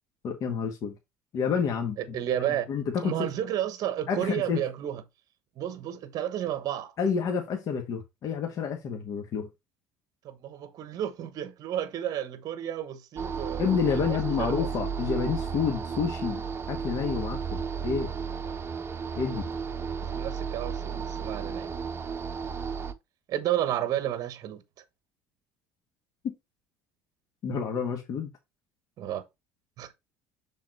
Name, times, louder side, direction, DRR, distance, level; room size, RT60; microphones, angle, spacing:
voice 1, 0.2-0.9 1.3-2.0 2.7-3.3 4.1-4.6 7.0-9.5 13.6-16.4 16.7-18.1 19.2-19.5 26.2-26.3 27.4-28.3, left 6 dB, 55° left, 1.4 m, -29 dB
voice 2, 2.0-2.7 3.0-5.0 5.6-6.9 10.2-14.7 20.1-21.7 23.3-24.6 29.0-29.2 29.8-29.9, right 11 dB, 60° right, 1.2 m, -32 dB
sound 1, 13.2-22.9, right 6 dB, 35° right, 0.9 m, -33 dB
6.4 x 4.0 x 4.1 m
hypercardioid pair, 70°, 7 cm